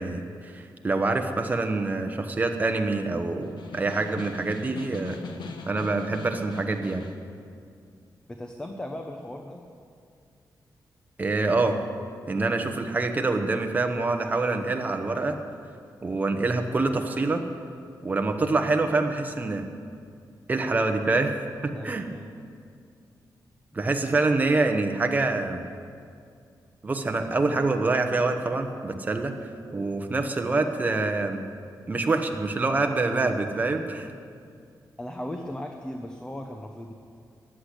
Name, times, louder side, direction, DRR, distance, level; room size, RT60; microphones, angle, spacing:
voice 1, 0.0-5.2 5.7-7.0 11.2-11.8 12.3-15.4 16.0-17.4 18.0-19.7 20.5-21.3 21.6-22.1 23.7-25.6 26.8-29.3 29.7-31.4 31.9-34.1, right 3 dB, 20° right, 4 dB, 1.0 m, -26 dB
Snare drum, 3.4-7.3, left 4 dB, 80° left, 1.2 m, -41 dB
voice 2, 8.3-9.6 21.7-22.4 35.0-36.9, left 1 dB, 10° left, 3 dB, 0.8 m, -37 dB
14.5 x 10.0 x 8.1 m, 2.3 s
wide cardioid pair, 175°, 7 cm